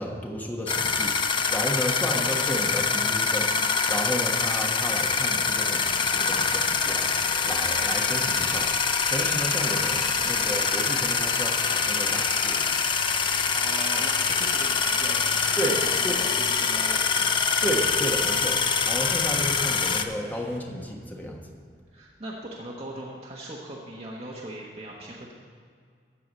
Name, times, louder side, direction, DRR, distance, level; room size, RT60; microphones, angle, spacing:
voice 1, 0.0-3.5 3.9-7.1 7.4-8.7 9.1-12.6 15.6-15.8 16.0-16.2 17.6-18.6 18.9-21.4, equal, 10° left, 0 dB, 1.3 m, -32 dB
sound 1, 0.7-20.0, left 5 dB, 30° left, 0.5 m, -25 dB
voice 2, 2.0-2.6 13.5-17.4 21.9-25.3, right 1 dB, 35° right, -4 dB, 1.2 m, -39 dB
sound 2, 4.6-20.6, left 4 dB, 80° left, 1.2 m, -39 dB
14.0 x 4.7 x 8.3 m, 2.1 s
head